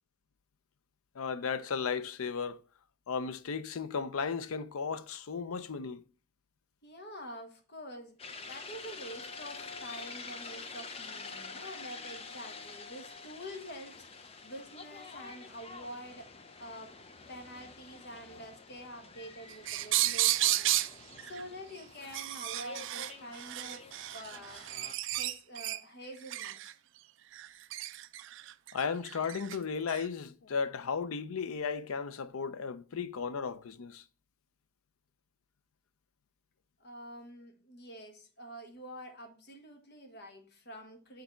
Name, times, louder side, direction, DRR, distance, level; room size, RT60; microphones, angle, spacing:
voice 1, 1.2-2.6 3.1-6.0 28.7-34.0, left 5 dB, 75° left, 0.5 m, -35 dB
voice 2, 6.8-16.3 16.6-16.9 17.3-20.9 21.2-23.8 24.1-24.6 25.0-26.8 36.8-41.2, equal, 50° left, 1.3 m, -47 dB
sound 1, 8.2-25.0, left 4 dB, 25° left, 0.6 m, -48 dB
sound 2, 19.5-20.9 21.2-21.4 22.0-25.8 26.3-26.7 27.3-29.6 29.9-30.0, right 15 dB, 55° right, 0.3 m, -32 dB
6.5 x 4.0 x 4.4 m
head